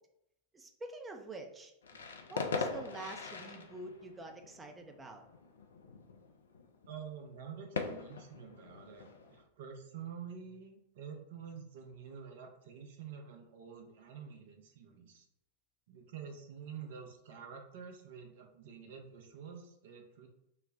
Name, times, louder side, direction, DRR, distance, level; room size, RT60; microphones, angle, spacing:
voice 1, 0.5-1.7 2.3-5.2, right 2 dB, 15° right, 4 dB, 0.5 m, -46 dB
sound 1, 1.8-9.4, left 4 dB, 70° left, 0.4 m, -42 dB
voice 2, 6.9-15.2 15.9-20.3, right 7 dB, 55° right, 4 dB, 0.6 m, -48 dB
3.9 x 2.1 x 2.6 m, 0.79 s
figure-of-eight pair, 90°, 0 cm